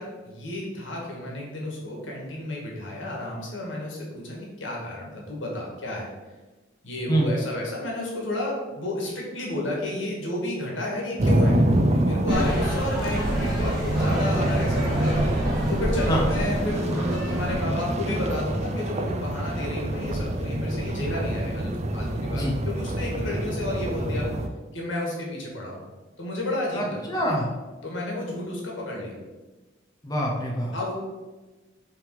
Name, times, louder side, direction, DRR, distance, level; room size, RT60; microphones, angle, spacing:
voice 1, 0.0-6.1 6.8-11.6 11.9-15.1 15.7-24.3 24.7-25.8 26.2-27.1 27.8-29.2 30.7-30.9, left 1 dB, 70° left, -2 dB, 2.0 m, -31 dB
sound 1, 11.2-24.5, right 1 dB, 35° right, 0.5 m, -26 dB
sound 2, 12.3-17.5, equal, ahead, 1.8 m, -30 dB
voice 2, 26.7-27.5 30.0-30.7, right 1 dB, 20° left, -2 dB, 0.8 m, -25 dB
6.8 x 3.4 x 4.9 m, 1.2 s
head